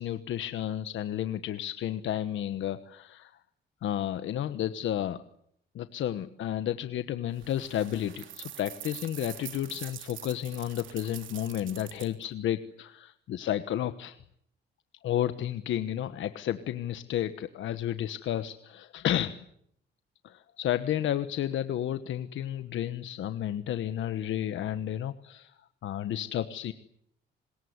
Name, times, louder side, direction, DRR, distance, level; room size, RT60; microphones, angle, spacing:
voice 1, 0.0-3.4 3.8-5.2 5.7-14.2 15.0-19.4 20.2-25.5 25.8-26.7, left 11 dB, 75° left, 11 dB, 1.2 m, -32 dB
sound 1, 7.4-12.2, right 11 dB, 75° right, 3.1 m, -45 dB
26.0 x 21.0 x 9.6 m, 0.72 s
cardioid pair, 90°, 20 cm